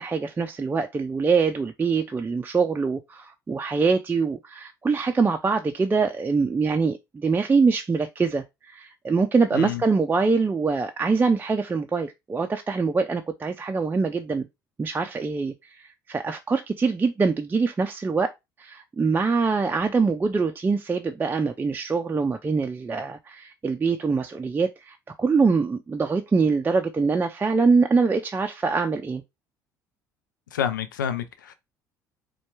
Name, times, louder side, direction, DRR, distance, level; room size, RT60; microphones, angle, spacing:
voice 1, 0.0-14.5 14.8-18.3 18.6-29.2, right 4 dB, 20° right, 0.5 m, -24 dB
voice 2, 30.5-31.5, left 8 dB, 80° left, 0.5 m, -28 dB
4.3 x 2.3 x 4.6 m
figure-of-eight pair, 60°, 10 cm